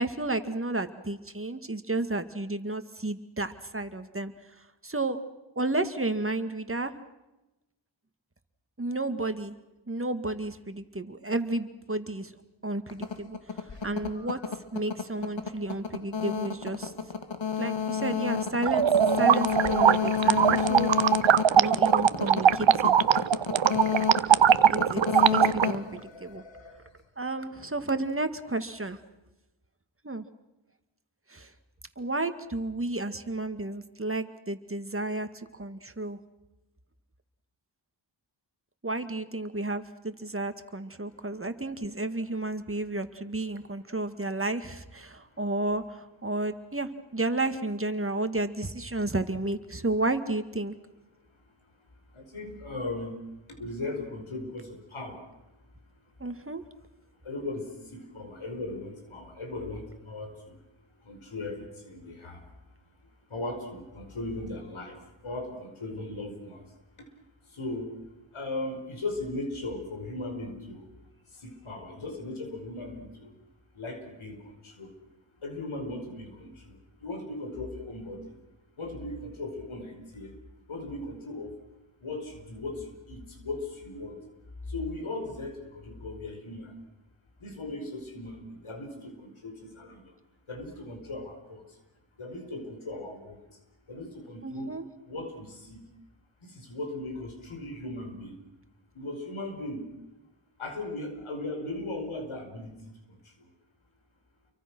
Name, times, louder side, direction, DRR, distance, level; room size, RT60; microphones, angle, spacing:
voice 1, 0.0-4.3 4.8-5.2 5.6-6.9 8.8-9.6 9.9-12.3 12.6-14.4 14.7-16.9 17.6-18.9 19.2-20.9 21.6-23.0 24.7-26.4 27.2-29.0 30.0-30.2 31.3-31.5 32.0-36.2 38.8-50.8 56.2-56.6 94.4-94.8, right 2 dB, 25° right, 9 dB, 2.1 m, -32 dB
sound 1, 12.9-26.7, left 7 dB, 65° left, 2.1 m, -30 dB
sound 2, 18.7-25.7, right 9 dB, 70° right, 0.8 m, -21 dB
voice 2, 52.1-53.2 53.6-55.2 57.3-60.5 61.1-62.4 63.3-65.0 65.2-66.6 67.5-67.9 68.3-70.9 71.4-73.3 73.8-74.4 74.6-74.9 75.4-78.2 78.8-80.3 80.7-81.5 82.0-84.2 84.7-86.7 87.4-90.0 90.5-91.6 92.2-93.4 93.9-94.7 95.1-95.8 96.4-98.4 99.0-99.8 100.6-102.8, left 2 dB, 80° left, 4 dB, 5.2 m, -37 dB
29.0 x 23.5 x 6.2 m, 0.98 s
cardioid pair, 45°, 48 cm